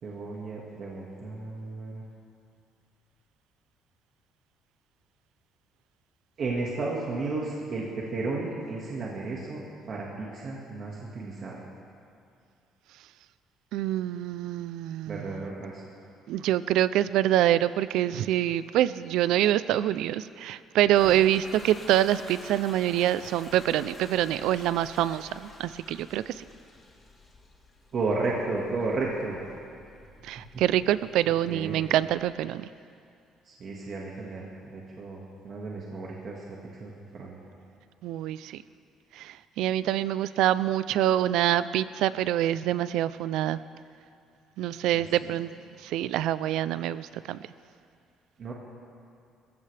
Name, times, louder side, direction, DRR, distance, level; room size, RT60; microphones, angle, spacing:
voice 1, 0.0-2.0 6.4-11.6 15.1-15.8 27.9-29.4 31.2-31.8 33.4-36.4 36.8-37.4 44.9-45.3 48.4-48.5, right 3 dB, 40° right, -3 dB, 1.7 m, -33 dB
voice 2, 13.7-15.4 16.3-26.4 30.2-32.6 38.0-38.6 39.1-43.6 44.6-45.5 45.8-47.4, right 12 dB, 80° right, 15 dB, 0.4 m, -26 dB
Toilet flush, 20.8-32.3, left 2 dB, 20° left, 1.6 m, -49 dB
25.5 x 15.0 x 3.4 m, 2.4 s
cardioid pair, 170°, 0 cm